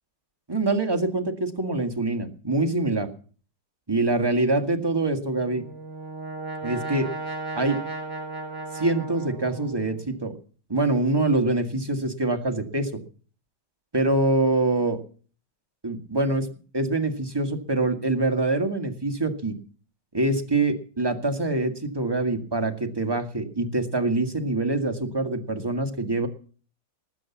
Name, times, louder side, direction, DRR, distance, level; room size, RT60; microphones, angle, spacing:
voice 1, 0.5-3.1 3.9-5.6 6.6-7.1 7.6-7.8 8.7-10.3 10.7-13.0 13.9-15.0 15.8-16.5 16.7-19.6 20.1-26.3, right 2 dB, 15° right, 6 dB, 1.7 m, -25 dB
Brass instrument, 5.3-10.1, right 2 dB, 70° right, 6.0 m, -35 dB
20.0 x 7.6 x 7.2 m, 0.41 s
omnidirectional pair, 2.0 m